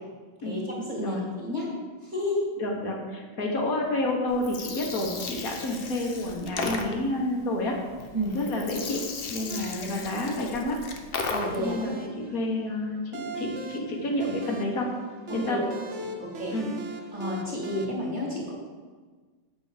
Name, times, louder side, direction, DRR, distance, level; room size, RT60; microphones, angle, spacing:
voice 1, 0.4-1.7 2.0-2.4 8.1-8.4 9.8-9.9 11.3-11.8 15.3-15.7 16.2-16.6 17.1-18.5, left 1 dB, 20° right, -4 dB, 3.0 m, -31 dB
voice 2, 2.6-7.8 8.3-9.0 9.3-10.8 11.6-14.9 15.3-15.6 16.5-16.7, left 1 dB, 45° left, 0 dB, 1.9 m, -29 dB
Gurgling, 4.3-11.8, left 4 dB, 80° left, 0.5 m, -36 dB
sound 1, 9.5-17.8, right 2 dB, 60° right, 0.7 m, -41 dB
8.0 x 8.0 x 5.1 m, 1.4 s
omnidirectional pair, 2.3 m